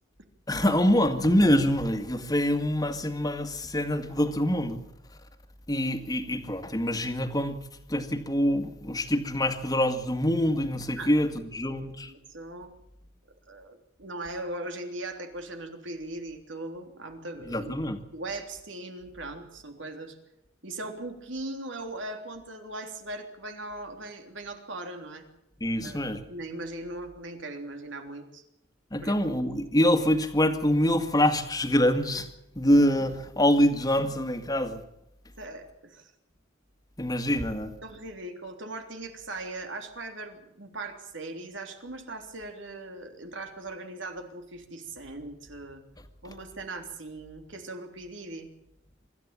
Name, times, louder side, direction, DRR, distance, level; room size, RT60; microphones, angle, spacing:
voice 1, 0.5-4.8 5.7-7.6 7.9-12.1 17.5-18.0 25.6-26.2 28.9-32.3 32.6-34.8 37.0-37.7, left 1 dB, 20° left, 7 dB, 2.1 m, -25 dB
voice 2, 11.7-12.7 13.5-17.7 18.1-20.2 20.6-25.2 25.8-28.4 29.0-29.1 35.4-36.1 37.8-45.8 46.2-48.5, right 2 dB, 70° right, 5 dB, 3.4 m, -39 dB
25.0 x 13.5 x 8.9 m, 0.82 s
head